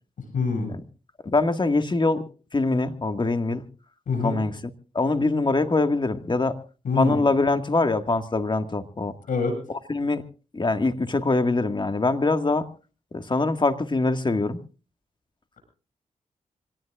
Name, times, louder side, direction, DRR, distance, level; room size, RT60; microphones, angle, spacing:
voice 1, 0.3-0.7 4.1-4.4 6.8-7.2 9.3-9.6, left 4 dB, 80° left, 4 dB, 7.2 m, -25 dB
voice 2, 1.2-2.2 2.5-3.6 4.2-4.6 5.0-6.6 7.0-9.1 9.9-10.2 10.5-12.7 13.1-14.6, left 3 dB, 35° left, 8 dB, 1.8 m, -23 dB
26.5 x 18.0 x 2.5 m, 0.37 s
cardioid pair, 60°, 13 cm